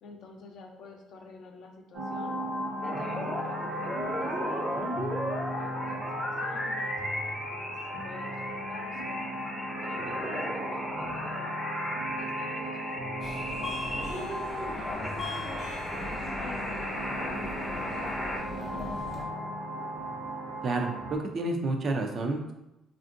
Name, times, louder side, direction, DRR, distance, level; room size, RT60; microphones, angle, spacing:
voice 1, 0.0-2.3 2.8-9.2 9.8-11.6 12.2-15.7 16.2-19.1, left 3 dB, 60° left, 2 dB, 0.6 m, -49 dB
sound 1, 1.9-21.2, equal, 70° right, 0.8 m, -36 dB
sound 2, 2.8-18.4, equal, 5° left, 0.6 m, -36 dB
Subway metro underground, 13.2-19.2, left 2 dB, 40° left, 0.9 m, -39 dB
voice 2, 20.6-22.5, right 2 dB, 40° right, 3 dB, 0.4 m, -30 dB
3.4 x 2.5 x 2.5 m, 0.94 s
cardioid pair, 125°, 0 cm